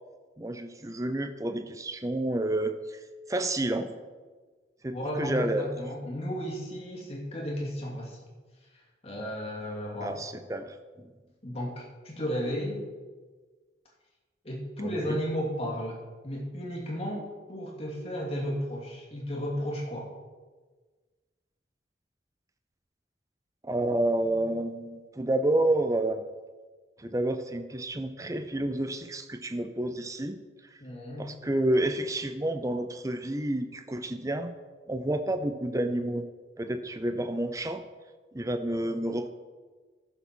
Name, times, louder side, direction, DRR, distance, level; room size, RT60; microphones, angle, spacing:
voice 1, 0.4-3.0 3.3-3.9 4.8-5.7 10.0-11.1 14.8-15.2 23.6-26.2 27.0-30.4 31.2-34.5 34.9-36.2 36.6-37.8 38.3-39.3, right 1 dB, 15° right, 7 dB, 0.6 m, -29 dB
voice 2, 4.9-8.2 8.7-10.2 11.4-12.8 14.4-20.1 30.8-31.3, equal, 35° left, -3 dB, 2.4 m, -34 dB
15.5 x 7.1 x 4.4 m, 1.4 s
head